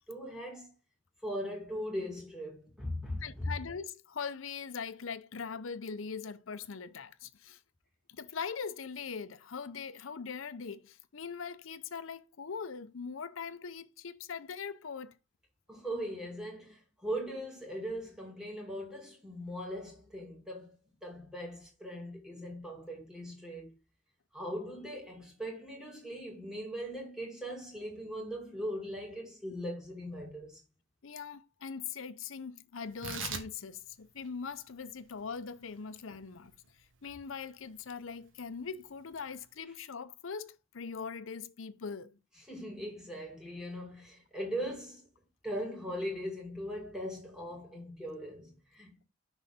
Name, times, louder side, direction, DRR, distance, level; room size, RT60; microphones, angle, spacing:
voice 1, 0.1-0.7 1.2-3.5 15.7-23.7 24.3-30.6 42.5-45.1 45.4-49.0, equal, 5° right, 2.4 m, -40 dB
voice 2, 3.2-7.6 8.1-15.2 31.0-36.5 37.0-42.2, left 6 dB, 85° left, 0.6 m, -41 dB
Tearing, 32.9-39.6, right 6 dB, 75° right, 1.2 m, -47 dB
6.3 x 3.9 x 5.3 m
head